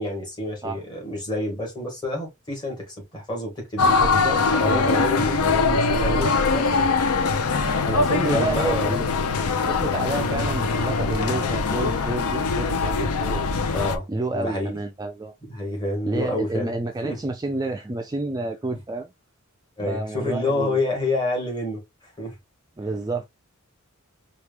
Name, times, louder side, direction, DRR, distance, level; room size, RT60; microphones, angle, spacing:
voice 1, 0.0-4.0 4.6-6.9 8.2-8.9 13.7-14.0 14.3-14.7 15.5-16.7 17.1-17.2 19.8-22.3, left 1 dB, 20° left, 1.8 m, -28 dB
sound 1, 3.8-14.0, left 4 dB, 85° left, 0.6 m, -22 dB
voice 2, 3.9-5.0 7.9-9.1 9.7-13.5 14.1-15.3 16.0-19.1 19.8-20.8 22.8-23.2, right 2 dB, 15° right, 0.3 m, -29 dB
4.6 x 2.4 x 3.3 m
head